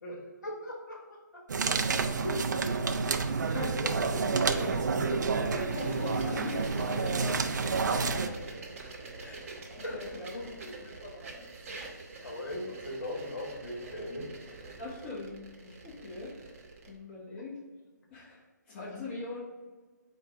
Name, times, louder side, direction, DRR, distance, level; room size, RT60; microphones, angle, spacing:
voice 1, 0.0-1.0 1.3-1.4 1.8-2.6 3.5-5.2 6.7-6.8 7.5-8.3 9.8-10.5 12.2-14.2, left 1 dB, 70° left, -1 dB, 1.4 m, -39 dB
sound 1, 1.5-8.3, right 4 dB, 70° right, 0.4 m, -29 dB
voice 2, 1.9-2.4 3.4-3.7 4.5-4.7 5.4-6.7 7.0-7.1 9.2-9.5 9.8-10.4 10.8-11.5 12.2-12.4 14.8-16.4 16.9-17.6 18.1-19.4, left 2 dB, 30° left, -6 dB, 1.0 m, -42 dB
sound 2, 5.7-16.9, right 3 dB, 45° right, 0.9 m, -45 dB
4.5 x 2.3 x 4.8 m, 1.3 s
figure-of-eight pair, 150°, 10 cm